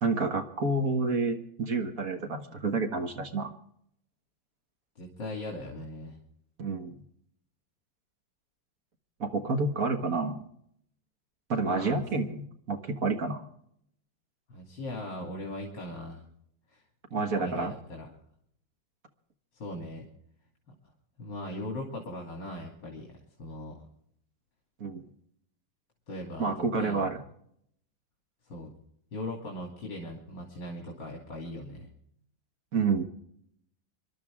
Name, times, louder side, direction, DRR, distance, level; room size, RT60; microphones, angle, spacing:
voice 1, 0.0-3.5 6.6-7.0 9.2-10.4 11.5-13.5 17.1-17.7 24.8-25.1 26.4-27.2 32.7-33.0, right 3 dB, 50° right, 5 dB, 1.8 m, -29 dB
voice 2, 5.0-6.2 11.6-12.0 14.5-16.2 16.7-16.8 17.2-18.1 19.5-20.1 21.2-23.8 26.1-27.1 28.5-28.7 29.1-31.9, left 1 dB, 65° left, -1 dB, 3.5 m, -39 dB
26.0 x 12.0 x 3.6 m, 0.69 s
omnidirectional pair, 2.1 m